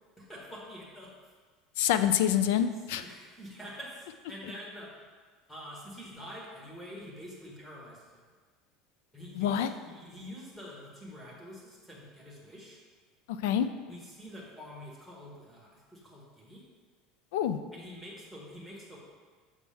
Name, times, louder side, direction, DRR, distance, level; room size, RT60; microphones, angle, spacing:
voice 1, 0.2-1.1 3.0-5.0 5.5-8.3 9.1-12.8 13.9-16.6 17.7-19.0, equal, 10° left, -4 dB, 1.5 m, -46 dB
voice 2, 1.8-3.0 9.3-9.7 13.4-13.7 17.3-17.6, left 10 dB, 85° left, 11 dB, 0.4 m, -26 dB
7.2 x 6.2 x 3.5 m, 1.5 s
cardioid pair, 175°, 0 cm